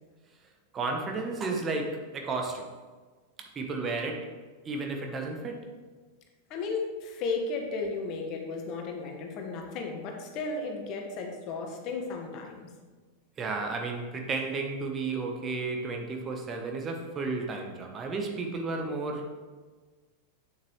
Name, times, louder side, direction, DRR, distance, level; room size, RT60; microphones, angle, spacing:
voice 1, 0.7-2.7 3.4-4.4 4.6-5.7 13.4-19.3, right 3 dB, 25° right, 3 dB, 1.0 m, -33 dB
voice 2, 6.5-12.7, left 3 dB, 40° left, 2 dB, 1.5 m, -34 dB
8.9 x 7.3 x 3.2 m, 1.4 s
figure-of-eight pair, 90°, 0 cm